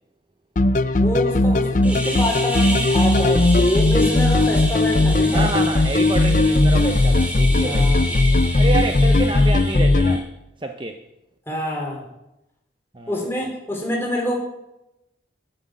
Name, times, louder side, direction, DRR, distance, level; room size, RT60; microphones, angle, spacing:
sound 1, 0.6-10.2, left 2 dB, 45° left, 0.5 m, -18 dB
voice 1, 0.9-5.6 7.6-8.1 11.5-12.0 13.1-14.4, left 1 dB, 15° left, -1 dB, 3.8 m, -26 dB
sound 2, 1.8-10.2, right 1 dB, 10° right, 2.2 m, -31 dB
voice 2, 5.3-8.2 8.6-10.3 10.6-11.0 12.9-13.4, right 2 dB, 25° right, 5 dB, 0.7 m, -28 dB
13.0 x 7.8 x 7.6 m, 0.89 s
head